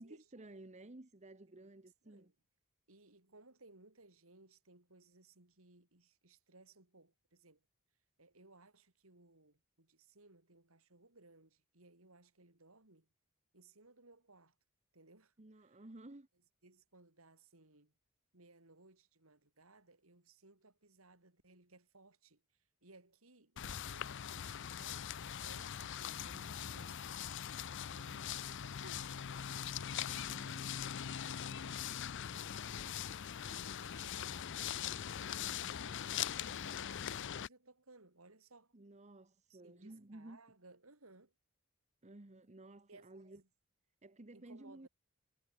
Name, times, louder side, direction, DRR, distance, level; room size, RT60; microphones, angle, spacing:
voice 1, 0.0-2.3 15.4-16.3 30.0-30.6 38.7-40.4 42.0-43.4 44.0-44.9, right 2 dB, 35° right, 1.2 m, -54 dB
voice 2, 2.9-7.6 8.2-13.1 13.5-14.6 14.9-15.3 15.6-15.8 16.6-17.9 18.3-22.4 22.8-27.0 27.7-30.6 30.8-31.9 32.3-33.0 33.5-38.7 39.5-41.3 42.9-43.5 44.3-44.9, right 2 dB, 75° right, 3.9 m, -62 dB
sound 1, 23.6-37.5, left 9 dB, 60° left, 0.6 m, -42 dB
head